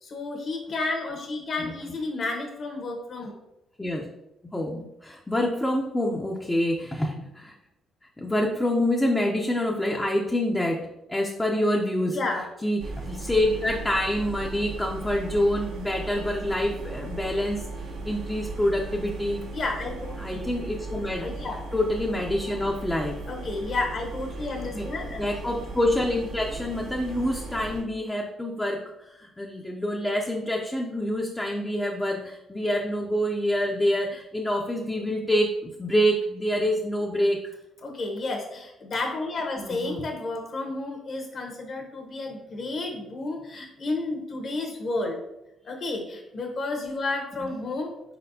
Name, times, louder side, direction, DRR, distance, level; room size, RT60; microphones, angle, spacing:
voice 1, 0.0-3.4 12.1-12.4 19.5-20.5 21.2-21.6 23.3-25.3 37.8-45.2 45.6-47.9, left 2 dB, 55° left, 2 dB, 1.1 m, -31 dB
voice 2, 4.5-7.5 8.2-12.2 12.6-17.6 18.0-19.4 20.2-21.3 21.7-23.2 24.7-24.9 25.2-37.5 39.6-40.0 47.4-47.5, left 1 dB, 15° left, -1 dB, 0.6 m, -26 dB
sound 1, 12.8-27.8, right 2 dB, 90° right, 1.0 m, -37 dB
4.5 x 4.2 x 2.7 m, 0.88 s
cardioid pair, 85°, 0 cm